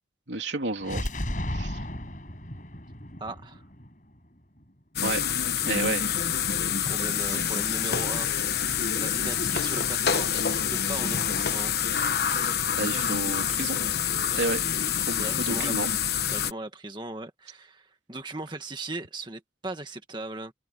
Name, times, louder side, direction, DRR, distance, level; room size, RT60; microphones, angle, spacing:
voice 1, 0.3-1.1 1.5-1.8 5.0-5.2 5.6-6.1 6.8-6.9 7.3-7.6 12.8-13.8 14.3-14.6 15.1-15.9, right 2 dB, 80° right, 3.1 m, -31 dB
sound 1, 0.8-4.6, left 1 dB, 45° left, 5.9 m, -34 dB
voice 2, 3.2-3.6 6.8-11.8 15.1-16.0 16.3-20.5, right 2 dB, 25° right, 1.7 m, -38 dB
sound 2, 5.0-16.5, left 8 dB, 60° left, 1.0 m, -27 dB
open air
head